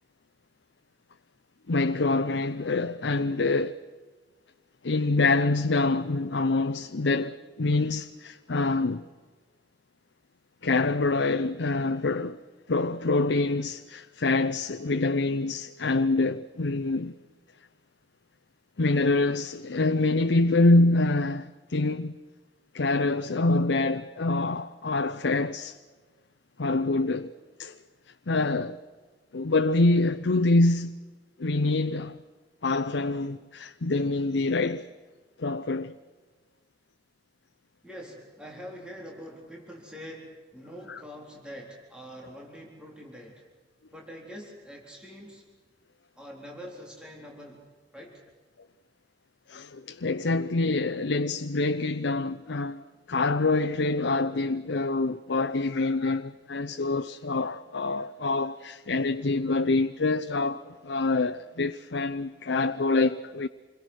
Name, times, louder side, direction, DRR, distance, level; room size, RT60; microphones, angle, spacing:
voice 1, 1.7-3.8 4.8-9.0 10.6-12.4 12.7-17.2 18.8-22.2 22.7-25.8 26.6-27.3 27.6-27.8 28.3-28.8 29.3-31.0 31.4-32.2 32.6-34.9 35.4-35.9 49.5-63.5, left 2 dB, 90° left, 0.7 m, -26 dB
voice 2, 37.8-43.4 43.9-45.4 46.1-47.6 47.9-48.2, equal, 5° right, 4.1 m, -44 dB
28.0 x 22.0 x 6.4 m
head